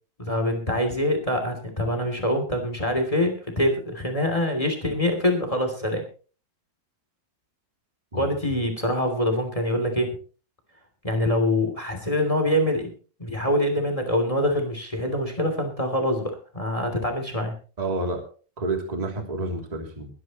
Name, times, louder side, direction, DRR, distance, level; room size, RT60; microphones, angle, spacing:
voice 1, 0.2-6.0 8.1-10.2 11.0-12.9 13.2-17.5, left 1 dB, 10° left, 5 dB, 2.1 m, -25 dB
voice 2, 17.8-18.2 18.6-20.1, right 2 dB, 10° right, 3 dB, 2.1 m, -29 dB
22.5 x 11.0 x 3.0 m, 0.37 s
omnidirectional pair, 4.6 m